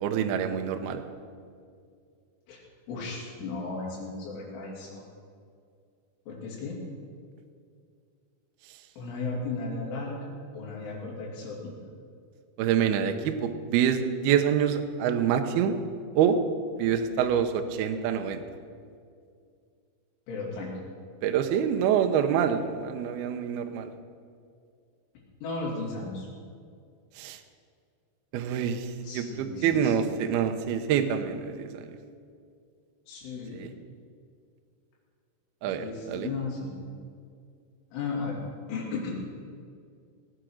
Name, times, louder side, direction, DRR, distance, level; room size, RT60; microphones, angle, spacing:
voice 1, 0.0-1.0 12.6-15.8 16.2-16.4 16.8-18.4 21.2-23.9 27.2-27.4 28.3-31.7 33.5-33.7 35.6-36.3, right 8 dB, 80° right, 6 dB, 2.4 m, -26 dB
voice 2, 2.9-5.0 6.3-6.8 9.0-11.7 20.3-20.7 25.4-26.3 29.0-30.1 33.1-33.7 35.6-36.8 37.9-38.4 38.7-39.1, left 3 dB, 80° left, -5 dB, 5.3 m, -35 dB
18.0 x 9.1 x 6.4 m, 2.2 s
omnidirectional pair, 5.4 m